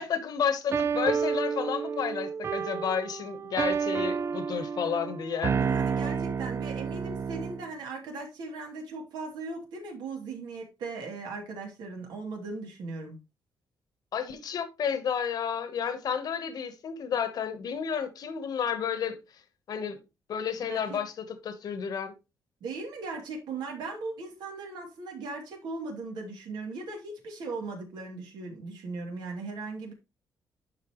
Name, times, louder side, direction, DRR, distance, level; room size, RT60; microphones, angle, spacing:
voice 1, 0.0-5.5 14.1-19.2 19.7-20.0 20.3-22.1, left 7 dB, 60° left, 1.1 m, -31 dB
sound 1, 0.7-7.7, right 6 dB, 35° right, 0.4 m, -30 dB
voice 2, 5.5-13.1 20.7-21.0 22.6-29.9, right 3 dB, 85° right, 2.8 m, -38 dB
11.0 x 4.6 x 3.0 m
cardioid pair, 130°, 7 cm